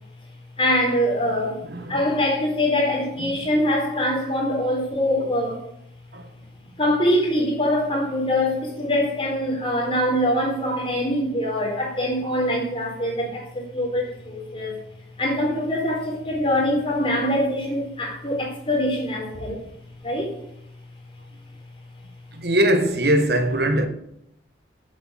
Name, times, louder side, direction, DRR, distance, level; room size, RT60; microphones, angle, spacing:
voice 1, 0.6-1.6 1.9-5.6 6.8-14.8 15.2-19.6 20.0-20.3, left 1 dB, 30° left, 3.9 m, -23 dB
voice 2, 22.3-23.9, right 1 dB, 60° right, 1.4 m, -21 dB
8.7 x 8.0 x 8.8 m
head